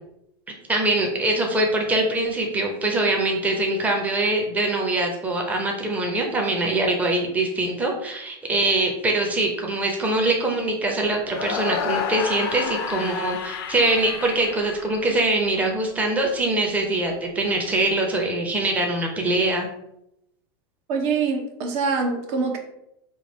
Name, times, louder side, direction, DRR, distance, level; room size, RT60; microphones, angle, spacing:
voice 1, 0.7-19.7, right 2 dB, 10° right, 1 dB, 0.7 m, -23 dB
sound 1, 11.3-15.5, left 7 dB, 70° left, 0.5 m, -30 dB
voice 2, 20.9-22.6, right 4 dB, 50° right, 4 dB, 0.8 m, -24 dB
3.1 x 2.4 x 4.2 m, 0.81 s
supercardioid pair, 130°, 13 cm